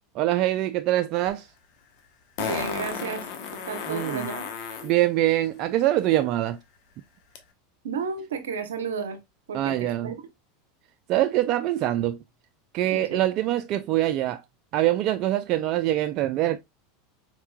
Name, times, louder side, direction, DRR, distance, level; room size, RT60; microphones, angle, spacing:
voice 1, 0.2-1.5 3.9-4.3 4.8-6.6 9.5-10.1 11.1-12.2 12.7-14.4 14.7-16.6, right 14 dB, 50° right, 0.3 m, -24 dB
Fart, 1.3-1.4 2.4-4.9 7.4-7.5, left 6 dB, 60° left, 0.9 m, -33 dB
voice 2, 2.4-3.2 3.5-4.5 7.8-9.2 9.5-10.1 12.9-13.2, right 5 dB, 85° right, 0.7 m, -32 dB
4.5 x 2.9 x 2.2 m
hypercardioid pair, 100°, 0 cm